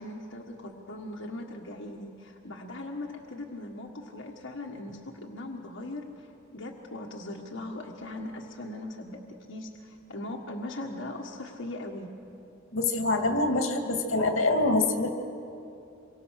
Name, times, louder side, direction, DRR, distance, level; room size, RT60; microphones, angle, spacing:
voice 1, 0.0-12.1, left 1 dB, 70° left, -1 dB, 1.7 m, -39 dB
voice 2, 12.7-15.1, left 2 dB, 90° left, 4 dB, 2.3 m, -25 dB
27.5 x 24.0 x 6.6 m, 2.8 s
head